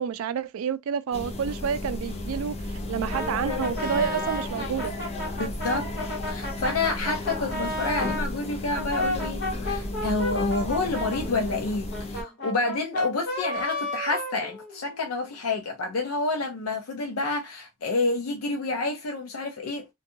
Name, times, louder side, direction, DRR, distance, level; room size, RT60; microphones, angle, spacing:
voice 1, 0.0-4.9, right 7 dB, 70° right, 0.3 m, -29 dB
sound 1, 1.1-12.2, left 2 dB, 30° left, 0.5 m, -33 dB
Brass instrument, 3.1-8.3 8.7-15.1, left 1 dB, 50° left, 1.1 m, -32 dB
voice 2, 5.4-6.0 6.3-19.9, left 3 dB, 85° left, 0.5 m, -29 dB
2.6 x 2.2 x 2.6 m
head